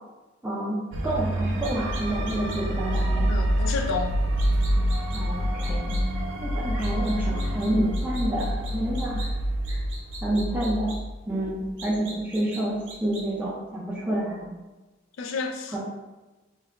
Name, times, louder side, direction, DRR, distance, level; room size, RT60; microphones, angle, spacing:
voice 1, 0.4-3.3 5.1-5.9 6.4-9.3 9.7-9.8 10.2-11.0 11.3-14.5 15.7-15.8, right 1 dB, 10° right, -6 dB, 0.4 m, -28 dB
sound 1, 0.9-11.9, equal, 90° right, 0.5 m, -27 dB
sound 2, 1.6-2.6 2.9-3.0 4.4-5.2 5.6-6.0 6.8-7.7 7.9-9.3 9.6-11.0 11.8-12.6 12.9-13.2, right 3 dB, 65° right, 0.9 m, -41 dB
voice 2, 3.3-4.2 15.2-15.9, left 4 dB, 75° left, 4 dB, 0.4 m, -30 dB
2.7 x 2.4 x 3.2 m, 1.1 s
head